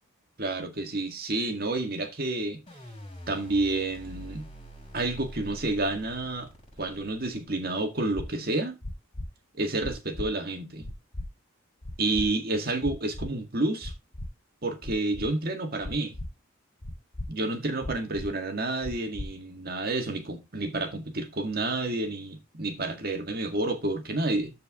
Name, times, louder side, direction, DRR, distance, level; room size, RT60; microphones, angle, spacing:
voice 1, 0.4-2.6 3.3-4.5 4.9-6.5 6.8-8.8 9.5-10.9 12.0-13.9 14.6-16.1 17.3-24.5, right 2 dB, 45° right, 1.8 m, -29 dB
sound 1, 2.7-7.7, equal, 25° left, 6.2 m, -45 dB
sound 2, 8.1-8.3 8.8-9.3 9.8-10.3 10.8-11.3 11.8-12.3 12.8-13.3 13.8-14.3 14.8-15.3 15.8-16.3 16.8-17.3 17.8-18.3 18.8-19.3, left 1 dB, 60° left, 2.5 m, -36 dB
13.5 x 4.7 x 3.7 m
head